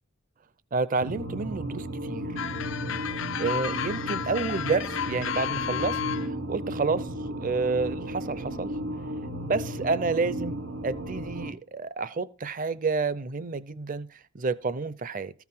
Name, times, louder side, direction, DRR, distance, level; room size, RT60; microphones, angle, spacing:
voice 1, 0.7-2.3 3.4-7.1 7.4-8.7 9.4-10.6 10.8-15.3, right 4 dB, 40° right, 0.6 m, -29 dB
sound 1, 1.0-11.5, right 1 dB, 90° right, 1.3 m, -34 dB
sound 2, 2.4-6.3, left 10 dB, 65° left, 0.4 m, -32 dB
14.0 x 4.8 x 5.5 m
head